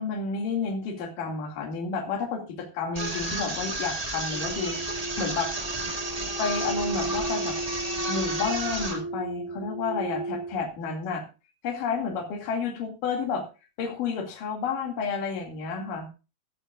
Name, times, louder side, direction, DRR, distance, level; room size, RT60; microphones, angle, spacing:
voice 1, 0.0-4.8 5.2-5.5 6.4-7.6 8.1-11.2 11.6-13.4 13.8-16.1, left 5 dB, 60° left, 2 dB, 3.7 m, -30 dB
sound 1, 2.9-9.0, right 1 dB, 60° right, 0.4 m, -32 dB
sound 2, 4.3-10.7, right 2 dB, 80° right, 8.7 m, -34 dB
14.5 x 13.5 x 2.4 m, 0.31 s
omnidirectional pair, 4.4 m